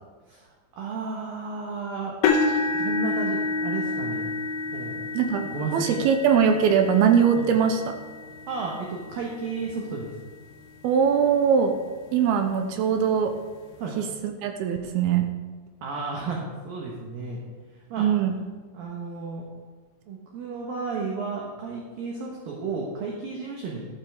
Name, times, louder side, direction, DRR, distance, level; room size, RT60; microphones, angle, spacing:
voice 1, 0.8-2.2 2.7-4.3 4.7-5.0 5.4-6.0 7.4-7.5 8.5-10.1 13.8-13.9 15.8-17.4 17.8-18.1 18.7-19.4 20.1-23.9, right 4 dB, 65° right, -1 dB, 2.6 m, -33 dB
sound 1, 2.2-10.3 10.9-11.1 11.6-11.7 13.1-13.2, left 3 dB, 80° left, 2.2 m, -29 dB
voice 2, 5.1-8.0 10.8-11.8 12.1-13.4 14.0-15.3 18.0-18.4, right 7 dB, 80° right, 6 dB, 2.3 m, -21 dB
13.0 x 12.0 x 3.5 m, 1.4 s
omnidirectional pair, 5.3 m